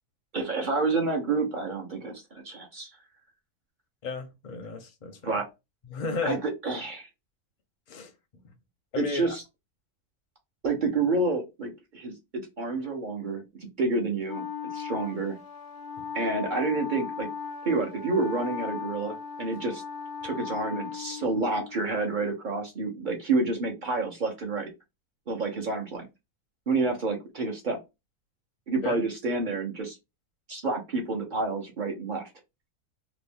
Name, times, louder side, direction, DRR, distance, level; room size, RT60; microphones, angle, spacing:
voice 1, 0.3-2.9 5.2-5.5 6.2-7.1 9.0-9.4 10.6-14.5 14.7-15.4 16.1-17.3 17.6-19.8 20.2-24.7 25.3-26.1 26.7-27.8 28.7-30.0 30.5-32.3, right 3 dB, 40° right, 0.7 m, -29 dB
voice 2, 4.0-5.4 5.9-6.4 7.9-8.1 8.9-9.4 16.0-16.1 28.8-29.0, left 4 dB, 45° left, 0.6 m, -33 dB
Wind instrument woodwind instrument, 14.3-21.8, left 6 dB, 80° left, 1.1 m, -37 dB
3.0 x 2.4 x 3.4 m
omnidirectional pair, 1.5 m